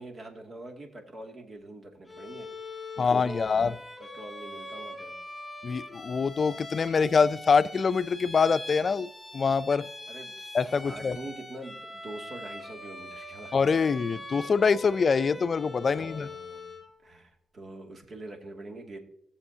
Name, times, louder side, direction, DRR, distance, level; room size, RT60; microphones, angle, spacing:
voice 1, 0.0-3.7 4.0-5.1 10.1-13.6 15.8-16.7 17.0-19.0, right 2 dB, 55° right, 2.2 m, -44 dB
Bowed string instrument, 2.1-16.9, left 1 dB, 10° left, 3.6 m, -43 dB
voice 2, 3.0-3.7 5.6-9.9 10.5-11.2 13.5-16.3, left 5 dB, 55° left, 0.4 m, -25 dB
19.0 x 7.0 x 2.8 m
cardioid pair, 65°, 0 cm